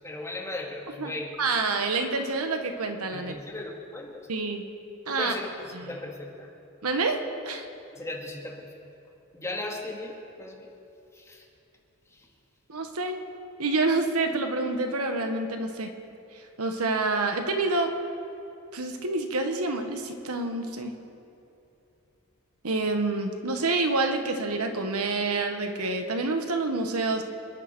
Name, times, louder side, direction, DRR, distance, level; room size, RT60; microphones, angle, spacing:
voice 1, 0.0-1.3 3.1-4.3 5.1-6.5 7.9-8.7 9.3-10.7 11.1-11.4, left 2 dB, 15° left, -1 dB, 2.1 m, -37 dB
voice 2, 1.4-3.3 4.3-4.6 5.1-5.3 5.7-6.0 6.8-7.7 12.7-13.2 13.6-15.9 16.6-17.9 18.7-20.9 22.6-27.2, right 3 dB, 75° right, 5 dB, 1.5 m, -27 dB
27.5 x 11.0 x 4.6 m, 2.8 s
head